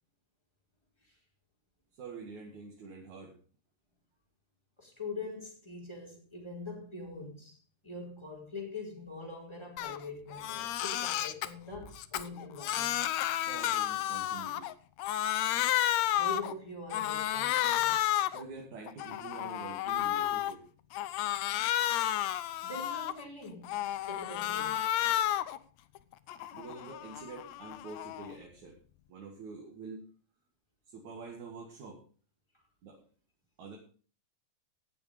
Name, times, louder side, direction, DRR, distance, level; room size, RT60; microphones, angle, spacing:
voice 1, 2.0-3.3 13.4-14.7 18.3-20.6 26.5-28.8 29.1-30.1 30.9-32.0 32.8-33.0 33.6-33.8, right 4 dB, 65° right, 3.2 m, -46 dB
voice 2, 4.8-13.0 16.1-18.0 22.6-23.7 24.1-24.8 32.5-32.6, left 3 dB, 10° left, 4.3 m, -43 dB
Crying sobbing, 9.8-10.0 10.3-11.5 11.9-14.7 15.0-16.5 16.9-18.4 18.9-20.5 20.9-23.2 23.6-25.6 26.0-28.3, left 13 dB, 75° left, 1.8 m, -32 dB
18.0 x 7.0 x 5.1 m
omnidirectional pair, 3.7 m